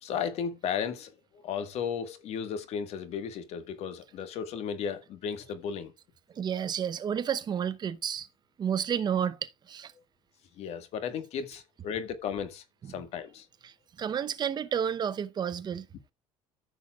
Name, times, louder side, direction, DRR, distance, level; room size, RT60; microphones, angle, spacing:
voice 1, 0.0-5.9 10.6-13.4, left 7 dB, 60° left, 1.6 m, -35 dB
voice 2, 6.3-8.3 8.6-9.9 12.8-12.9 13.6-15.9, right 8 dB, 35° right, 0.8 m, -31 dB
14.0 x 6.9 x 2.4 m
cardioid pair, 125°, 12 cm